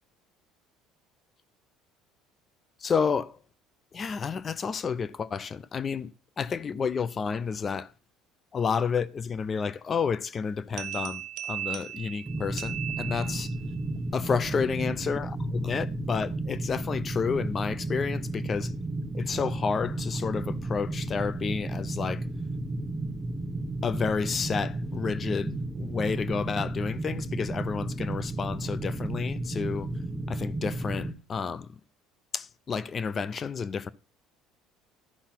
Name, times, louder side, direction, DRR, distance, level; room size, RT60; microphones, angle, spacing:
voice 1, 2.8-3.4 3.9-6.1 6.4-7.9 8.5-13.5 14.1-18.7 19.1-22.2 23.8-29.9 30.3-31.7 32.3-33.9, left 5 dB, 30° left, 0.5 m, -30 dB
sound 1, 10.8-13.7, right 11 dB, 60° right, 1.1 m, -37 dB
sound 2, 12.3-31.1, right 2 dB, 15° right, 0.9 m, -33 dB
12.0 x 5.7 x 5.8 m
cardioid pair, 135°, 0 cm